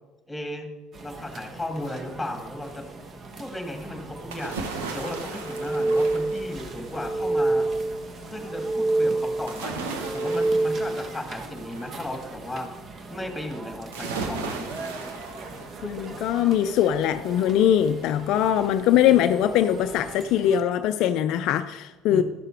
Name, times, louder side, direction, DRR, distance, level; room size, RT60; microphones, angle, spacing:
voice 1, 0.3-0.7 1.0-2.9 3.3-4.6 4.9-7.7 8.2-12.7 13.1-14.7 22.1-22.2, left 1 dB, 10° left, 4 dB, 2.0 m, -35 dB
sound 1, 0.9-20.6, right 3 dB, 45° right, 1.2 m, -42 dB
sound 2, 4.3-7.1 9.5-12.1 13.9-16.2 16.6-16.7, right 4 dB, 80° right, 1.1 m, -36 dB
sound 3, 5.4-6.6 6.9-8.1 8.4-9.6 10.0-11.1, right 2 dB, 20° right, 0.6 m, -25 dB
voice 2, 15.8-22.2, left 10 dB, 60° left, 10 dB, 0.4 m, -22 dB
12.0 x 6.7 x 4.5 m, 1.2 s
hypercardioid pair, 65°, 0 cm